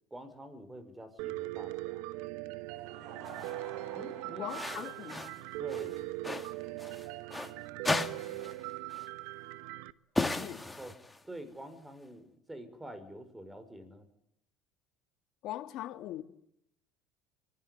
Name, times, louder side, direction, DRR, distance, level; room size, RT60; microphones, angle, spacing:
voice 1, 0.1-2.1 3.9-5.3 5.6-6.0 10.2-10.5 10.8-10.9 11.3-14.1, right 1 dB, 10° right, 5.5 m, -47 dB
Piano, 1.2-9.9, right 18 dB, 80° right, 1.1 m, -40 dB
Laughter / Crowd, 2.5-9.5, right 6 dB, 65° right, 6.6 m, -52 dB
sound 1, 3.3-3.5 4.5-5.4 5.7-7.5 7.8-8.6 8.9-9.1 10.2-11.3, left 2 dB, 10° left, 2.2 m, -36 dB
voice 2, 4.4-5.2 10.3-10.6 15.4-16.2, left 14 dB, 60° left, 2.8 m, -40 dB
24.5 x 19.5 x 9.9 m
supercardioid pair, 115°, 0 cm